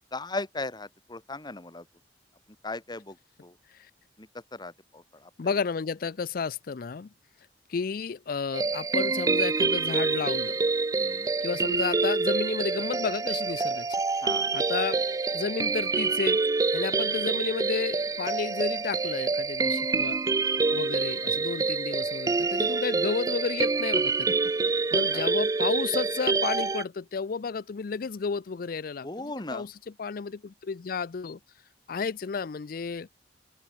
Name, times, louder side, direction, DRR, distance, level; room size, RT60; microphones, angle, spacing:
voice 1, 0.1-1.9 2.6-3.2 3.4-3.5 4.2-5.5 11.0-11.3 14.2-14.5 16.9-17.0 25.1-25.2 29.0-29.7, left 2 dB, 25° left, 1.8 m, -37 dB
voice 2, 5.4-7.1 7.7-10.6 11.4-14.0 14.5-15.0 15.3-16.4 16.7-20.2 20.7-24.4 24.9-29.7 30.0-31.4 31.9-33.1, left 5 dB, 55° left, 0.5 m, -32 dB
sound 1, 8.5-26.8, right 4 dB, 20° right, 0.4 m, -27 dB
open air
head